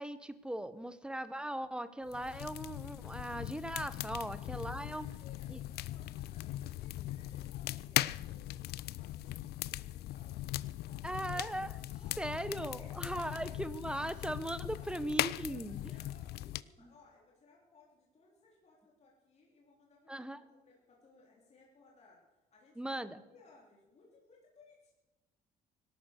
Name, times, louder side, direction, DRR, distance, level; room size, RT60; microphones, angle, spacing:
voice 1, 0.0-5.1 5.5-5.6 11.0-11.7 12.2-15.8 20.1-20.4 22.8-23.2, right 1 dB, 5° right, 14 dB, 0.9 m, -39 dB
sound 1, 2.1-16.6, left 15 dB, 70° left, 0.5 m, -39 dB
voice 2, 4.1-4.4 4.9-10.5 10.8-11.5 11.9-12.3 12.6-13.6 14.7-14.9 15.2-20.3 20.6-23.0 23.3-24.9, left 3 dB, 40° left, -2 dB, 3.4 m, -63 dB
18.0 x 12.0 x 6.7 m, 1.1 s
cardioid pair, 110°, 17 cm